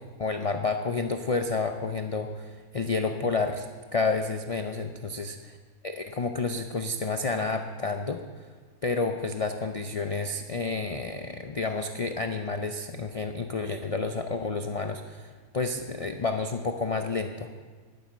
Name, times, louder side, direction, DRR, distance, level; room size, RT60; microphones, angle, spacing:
voice 1, 0.0-3.7 3.9-5.6 5.8-8.2 8.8-17.5, left 3 dB, 55° left, 6 dB, 0.3 m, -30 dB
11.5 x 9.5 x 7.1 m, 1.5 s
omnidirectional pair, 1.5 m